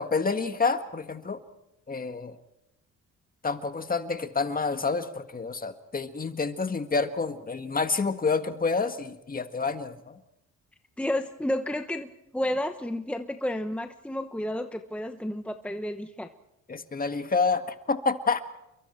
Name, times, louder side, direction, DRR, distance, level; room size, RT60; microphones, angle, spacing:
voice 1, 0.0-1.4 1.9-2.4 3.4-10.2 16.7-18.4, left 4 dB, 30° left, 8 dB, 1.8 m, -28 dB
voice 2, 11.0-16.3, left 1 dB, 5° left, 7 dB, 1.0 m, -31 dB
30.0 x 23.0 x 4.5 m, 0.87 s
cardioid pair, 90°, 30 cm